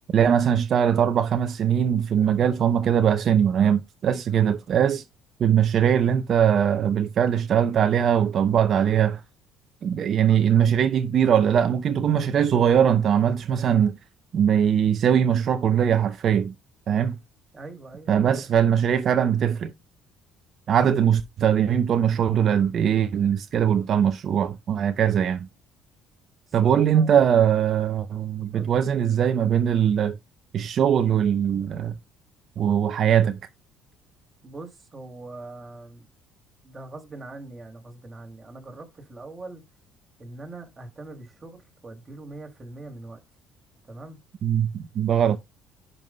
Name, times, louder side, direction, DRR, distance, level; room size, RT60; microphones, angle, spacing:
voice 1, 0.1-5.0 5.4-9.2 9.8-13.9 14.3-16.5 16.9-17.2 18.1-19.7 20.7-25.5 26.5-30.2 30.5-31.9 32.6-33.4 44.4-45.4, right 8 dB, 55° right, 0.6 m, -21 dB
voice 2, 17.5-18.6 26.5-27.1 28.5-28.7 34.4-36.1 36.6-39.6 40.2-43.2 43.9-44.2, right 2 dB, 25° right, 2.4 m, -42 dB
10.5 x 5.5 x 2.2 m
supercardioid pair, 80°, 0 cm